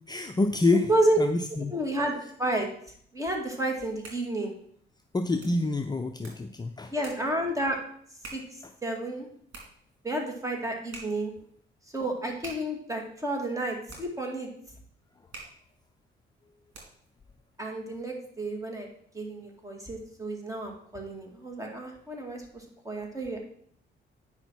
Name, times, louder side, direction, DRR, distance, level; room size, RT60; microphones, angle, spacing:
voice 1, 0.1-0.9 1.2-1.7 5.1-6.9, left 2 dB, 20° left, 6 dB, 0.5 m, -27 dB
voice 2, 1.7-2.7 3.1-4.5 6.9-7.8 8.3-9.3 10.0-11.3 11.9-14.5 17.6-18.9 19.1-23.4, right 1 dB, 15° right, 1 dB, 2.2 m, -31 dB
sound 1, 3.8-17.2, right 3 dB, 70° right, 3.4 m, -50 dB
9.0 x 5.7 x 4.5 m, 0.63 s
cardioid pair, 90°, 20 cm